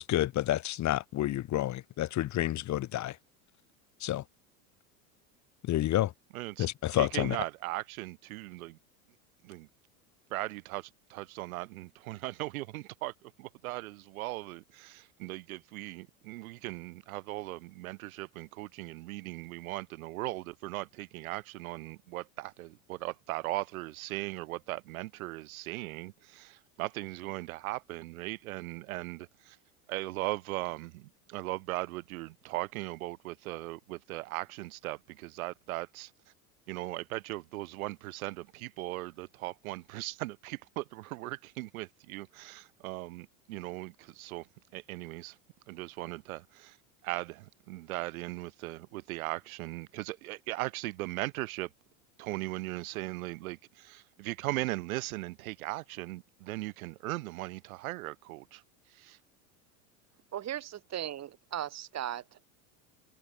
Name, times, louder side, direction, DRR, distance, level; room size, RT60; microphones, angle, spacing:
voice 1, 0.0-3.2 4.0-4.2 5.6-6.1 6.6-7.4, left 14 dB, 40° left, 2.0 m, -29 dB
voice 2, 6.3-6.7 6.9-8.8 9.4-9.7 10.3-29.6 29.9-36.1 36.7-44.5 44.7-45.4 45.7-46.8 47.0-51.7 52.2-58.6 58.9-59.2, right 19 dB, 75° right, 1.9 m, -38 dB
voice 3, 60.3-62.5, right 11 dB, 40° right, 3.9 m, -37 dB
hypercardioid pair, 105°, 43 cm